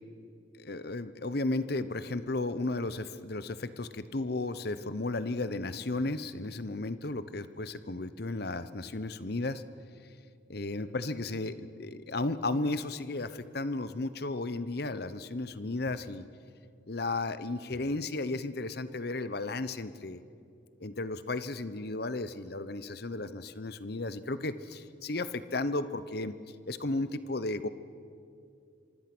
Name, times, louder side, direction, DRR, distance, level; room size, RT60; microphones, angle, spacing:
voice 1, 0.5-9.6 10.5-16.2 16.9-20.2 20.8-26.3 26.7-27.7, left 2 dB, 55° left, 13 dB, 0.9 m, -34 dB
26.0 x 25.0 x 6.2 m, 2.5 s
head